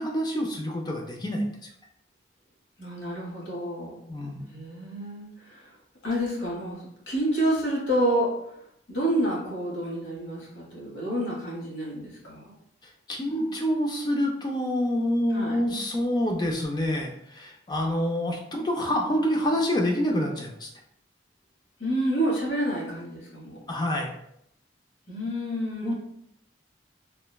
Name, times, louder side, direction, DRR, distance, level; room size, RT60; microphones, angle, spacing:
voice 1, 0.0-1.4 4.1-4.5 13.1-20.7 23.7-24.1 25.8-25.9, equal, 25° left, 1 dB, 0.4 m, -27 dB
voice 2, 2.8-4.0 4.5-5.7 6.0-8.3 8.9-12.5 15.3-15.6 21.8-23.6 25.1-25.9, right 1 dB, 75° left, -4 dB, 1.1 m, -29 dB
3.1 x 2.1 x 2.2 m, 0.75 s
head